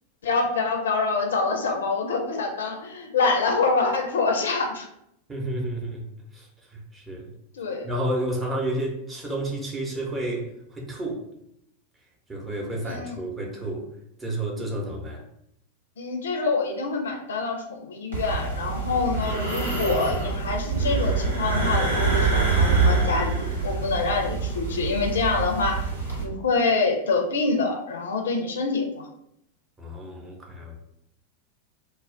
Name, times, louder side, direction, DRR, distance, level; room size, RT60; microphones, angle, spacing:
voice 1, 0.2-4.9 7.5-7.9 12.8-13.2 16.0-25.8 26.2-29.1, left 3 dB, 65° left, 2 dB, 0.4 m, -26 dB
voice 2, 5.3-6.1 6.3-6.4 6.9-7.3 7.8-11.2 12.3-13.9 14.2-15.2 29.8-30.8, right 1 dB, 15° right, -1 dB, 0.7 m, -30 dB
sound 1, 18.1-26.2, right 4 dB, 80° right, 0.9 m, -25 dB
2.2 x 2.0 x 3.6 m, 0.78 s
figure-of-eight pair, 90°, 0 cm